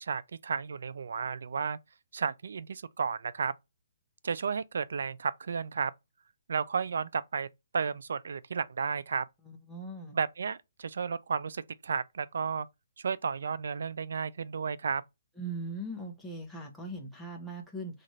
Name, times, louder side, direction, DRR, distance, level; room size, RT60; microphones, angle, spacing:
voice 1, 0.0-1.8 2.1-3.5 4.2-5.9 6.5-7.5 7.7-9.3 10.1-12.7 13.0-15.0, right 6 dB, 70° right, 0.4 m, -33 dB
voice 2, 9.5-10.2 15.4-18.0, right 2 dB, ahead, 0.7 m, -40 dB
4.1 x 2.5 x 3.1 m
hypercardioid pair, 165°, 0 cm